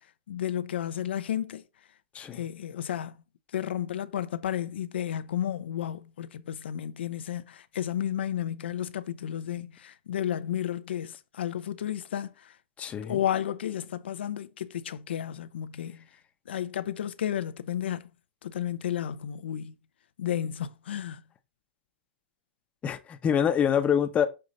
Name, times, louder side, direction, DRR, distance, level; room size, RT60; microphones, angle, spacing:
voice 1, 0.3-1.6 2.3-3.1 3.5-12.5 13.0-16.0 16.5-18.0 18.4-19.7 20.2-21.2, left 10 dB, 80° left, 0.7 m, -32 dB
voice 2, 12.8-13.2 22.8-24.3, left 8 dB, 25° left, 0.9 m, -26 dB
6.5 x 2.8 x 5.2 m
hypercardioid pair, 130°, 6 cm